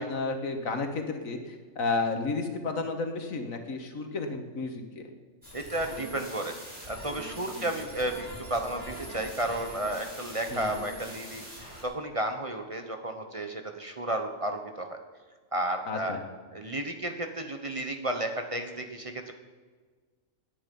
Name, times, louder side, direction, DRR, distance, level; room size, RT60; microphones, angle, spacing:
voice 1, 0.0-5.1 7.5-7.7 10.5-10.8 15.9-16.2, left 3 dB, 90° left, 5 dB, 2.0 m, -32 dB
sound 1, 5.4-11.8, right 1 dB, 60° right, 6.3 m, -43 dB
voice 2, 5.5-6.5 6.9-15.0 15.5-16.2 16.5-19.3, right 1 dB, 25° right, 5 dB, 1.1 m, -33 dB
18.0 x 9.9 x 5.4 m, 1.5 s
omnidirectional pair, 1.4 m